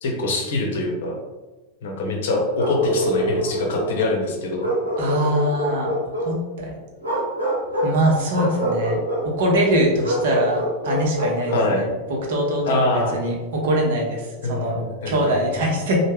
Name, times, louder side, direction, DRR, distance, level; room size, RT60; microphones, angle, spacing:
voice 1, 0.0-1.2 1.8-4.7 11.5-11.8 12.7-13.2 14.4-15.4, left 2 dB, 60° left, 0 dB, 0.6 m, -24 dB
Bark, 2.6-4.2 4.6-6.3 7.0-8.0 8.3-9.3 10.0-11.7, equal, 85° right, 0.8 m, -24 dB
voice 2, 5.0-5.9 6.2-6.8 7.8-9.0 9.2-11.9 12.3-14.8 15.1-16.0, right 1 dB, 55° right, -1 dB, 0.8 m, -22 dB
3.1 x 2.1 x 3.4 m, 1.2 s
figure-of-eight pair, 90°, 0 cm